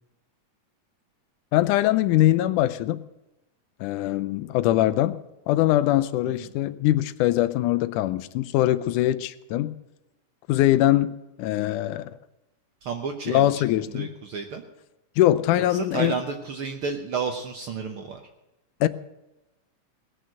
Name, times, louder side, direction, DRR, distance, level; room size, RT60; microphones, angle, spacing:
voice 1, 1.5-3.0 3.8-5.2 5.5-9.7 10.5-12.2 13.3-14.1 15.2-16.1 18.8-18.9, left 14 dB, 85° left, 14 dB, 2.1 m, -22 dB
voice 2, 12.8-13.5 13.9-14.6 15.7-18.2, right 5 dB, 65° right, 5 dB, 1.4 m, -31 dB
19.0 x 6.5 x 7.8 m, 0.97 s
omnidirectional pair, 3.5 m